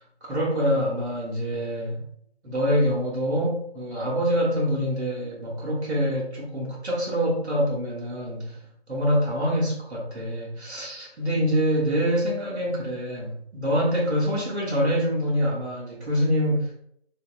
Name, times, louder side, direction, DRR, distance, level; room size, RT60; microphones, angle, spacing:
voice 1, 0.2-2.0 2.4-8.6 8.9-16.7, equal, 85° right, -4 dB, 0.9 m, -25 dB
2.7 x 2.1 x 2.3 m, 0.71 s
figure-of-eight pair, 175°, 33 cm